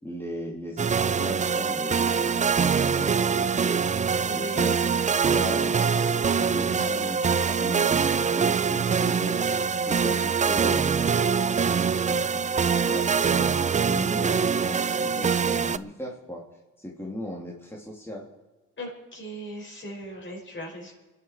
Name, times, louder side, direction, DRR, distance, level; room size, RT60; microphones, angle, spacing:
voice 1, 0.0-2.5 2.8-4.8 5.1-11.5 12.1-12.4 12.7-16.4 16.8-18.3, equal, 10° left, -3 dB, 3.0 m, -38 dB
sound 1, 0.8-15.8, right 6 dB, 25° right, 0.5 m, -24 dB
voice 2, 4.2-5.1 18.8-20.9, right 1 dB, 40° left, 1 dB, 5.8 m, -38 dB
26.5 x 11.0 x 4.6 m, 1.2 s
cardioid pair, 90°, 30 cm